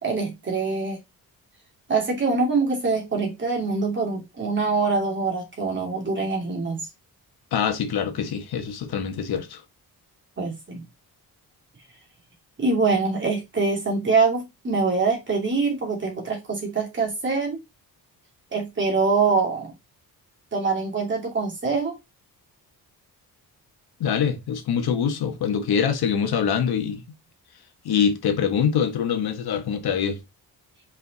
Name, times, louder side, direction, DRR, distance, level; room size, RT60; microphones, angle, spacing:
voice 1, 0.0-1.0 1.9-6.9 10.4-10.8 12.6-17.6 18.5-19.7 20.5-21.9, right 4 dB, 30° right, 2.7 m, -24 dB
voice 2, 7.5-9.6 24.0-27.0 27.8-30.2, left 7 dB, 75° left, 1.4 m, -24 dB
5.1 x 5.0 x 4.1 m
wide cardioid pair, 165°, 38 cm